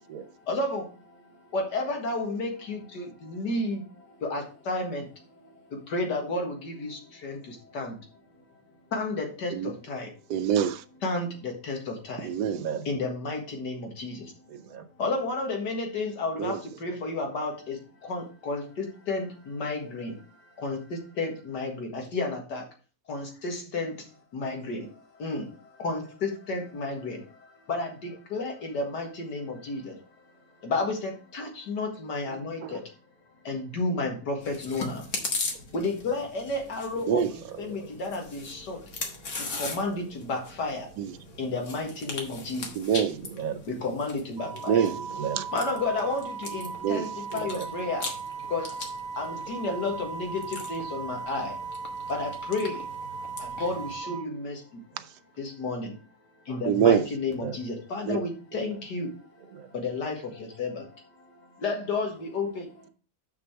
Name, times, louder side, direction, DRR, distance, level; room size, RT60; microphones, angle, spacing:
voice 1, 0.5-0.8 1.5-3.8 4.2-5.0 5.9-7.9 8.9-10.1 11.0-12.3 12.9-14.2 15.0-17.8 18.0-20.1 20.6-22.6 23.1-23.9 24.3-24.9 25.2-25.5 25.8-27.2 27.7-29.9 30.6-32.8 33.5-35.0 35.7-38.8 39.6-40.9 41.4-42.7 43.7-44.9 45.5-48.1 48.5-48.7 49.2-51.6 52.1-52.8 53.4-54.6 55.4-55.9 56.5-59.1 59.7-60.2 60.6-60.8 61.6-62.7, left 3 dB, 80° left, 2.3 m, -31 dB
voice 2, 10.3-10.8 12.2-12.6 16.4-16.6 37.1-37.3 41.0-41.1 42.8-43.2 44.7-45.0 45.4-45.5 46.8-47.1 56.7-57.0 58.1-58.2, right 9 dB, 85° right, 1.3 m, -24 dB
voice 3, 12.4-12.9 14.5-14.9 16.8-17.0 27.1-27.2 32.3-32.8 37.5-37.9 43.1-43.6 44.9-45.5 46.7-47.0 47.3-47.7 54.9-55.0 57.4-57.6 58.5-58.6 59.5-59.7, right 8 dB, 60° right, 1.3 m, -37 dB
Chewing mastication, 34.4-54.0, left 3 dB, 55° left, 1.8 m, -40 dB
Wind instrument woodwind instrument, 44.4-54.3, right 5 dB, 35° right, 1.0 m, -37 dB
6.6 x 6.0 x 4.6 m
omnidirectional pair, 1.8 m